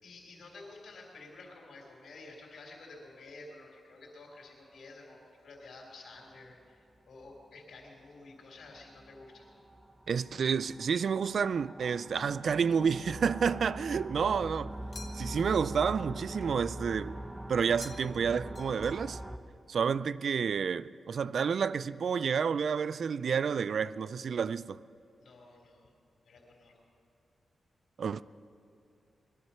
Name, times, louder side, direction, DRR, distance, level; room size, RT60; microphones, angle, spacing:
voice 1, 0.0-9.5 25.2-25.9 26.2-26.8, left 3 dB, 75° left, 3.7 m, -51 dB
sound 1, 6.4-6.5 7.2-7.5 7.8-7.9 8.5-19.4, right 1 dB, 15° right, 0.7 m, -43 dB
voice 2, 10.1-14.7 15.1-17.2 17.5-19.2 19.7-24.8 28.0-28.2, right 6 dB, 65° right, 0.3 m, -30 dB
sound 2, 14.9-15.5 17.8-18.3 18.5-19.3, left 4 dB, 40° left, 1.1 m, -50 dB
21.0 x 11.5 x 5.8 m
wide cardioid pair, 115°, 0 cm